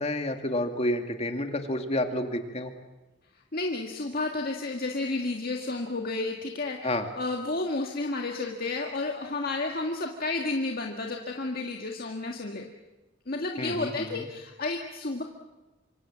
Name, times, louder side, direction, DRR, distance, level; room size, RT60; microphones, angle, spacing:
voice 1, 0.0-2.7 6.8-7.1 13.6-14.2, left 1 dB, 35° left, 5 dB, 2.4 m, -30 dB
voice 2, 3.5-12.7 13.3-15.2, left 2 dB, 50° left, 1 dB, 1.8 m, -31 dB
26.0 x 25.5 x 7.5 m, 1.1 s
head